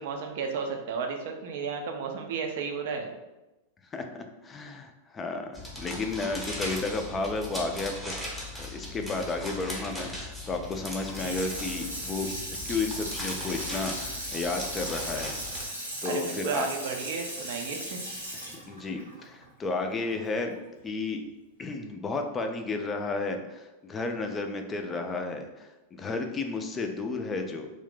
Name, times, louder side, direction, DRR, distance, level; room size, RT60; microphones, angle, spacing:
voice 1, 0.0-3.1 11.2-11.4 16.0-18.0, right 5 dB, 55° right, 3 dB, 0.4 m, -33 dB
voice 2, 3.9-8.1 8.6-12.3 12.7-15.4 16.0-16.7 18.3-20.6 20.8-21.2 21.6-27.7, left 3 dB, 20° left, 5 dB, 0.3 m, -32 dB
sound 1, 5.5-15.7, left 1 dB, ahead, 0.8 m, -39 dB
Water tap faucet / Sink (filling or washing), 10.9-20.2 20.6-20.7, right 1 dB, 90° right, 0.8 m, -37 dB
2.5 x 2.1 x 3.7 m, 1.0 s
figure-of-eight pair, 90°, 0 cm